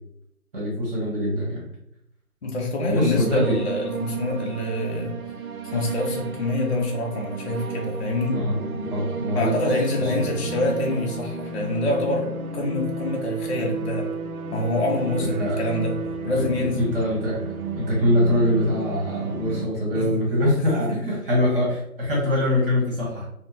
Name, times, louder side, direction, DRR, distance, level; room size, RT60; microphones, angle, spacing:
voice 1, 0.5-1.7 2.8-3.6 8.3-9.6 10.0-10.3 15.2-15.7 16.3-16.4 16.8-23.3, left 1 dB, 40° right, -4 dB, 1.1 m, -24 dB
voice 2, 2.4-5.2 5.6-8.4 9.3-14.1 14.5-16.0 16.2-16.8 19.9-20.2 20.6-21.0, left 2 dB, 50° left, 0 dB, 0.5 m, -26 dB
sound 1, 2.9-19.7, right 4 dB, 75° right, 0.5 m, -33 dB
3.6 x 2.1 x 2.6 m, 0.73 s
figure-of-eight pair, 155°, 44 cm